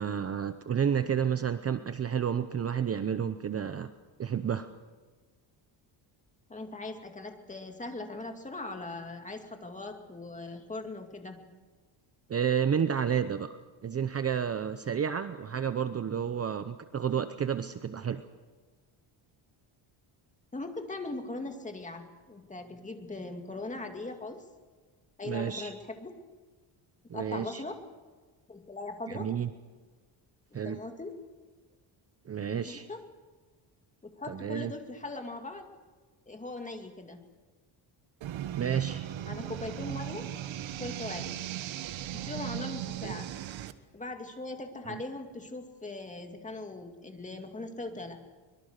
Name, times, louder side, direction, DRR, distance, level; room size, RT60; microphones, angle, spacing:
voice 1, 0.0-3.9 4.2-4.7 12.3-13.5 13.8-18.2 25.2-25.7 27.1-27.6 29.1-29.5 30.5-30.8 32.3-32.9 34.3-34.7 38.6-39.1 43.0-43.1 44.9-45.0, right 8 dB, 30° right, 10 dB, 0.7 m, -31 dB
voice 2, 6.5-11.5 20.5-24.4 25.2-26.1 27.1-27.8 28.5-29.3 30.5-31.2 32.5-33.0 34.0-35.7 36.3-37.2 39.3-40.3 40.8-41.4 42.2-43.3 43.9-48.2, left 2 dB, 15° left, 4 dB, 2.3 m, -40 dB
sound 1, 38.2-43.7, right 12 dB, 70° right, 1.3 m, -37 dB
24.5 x 22.0 x 6.7 m, 1.4 s
cardioid pair, 150°, 47 cm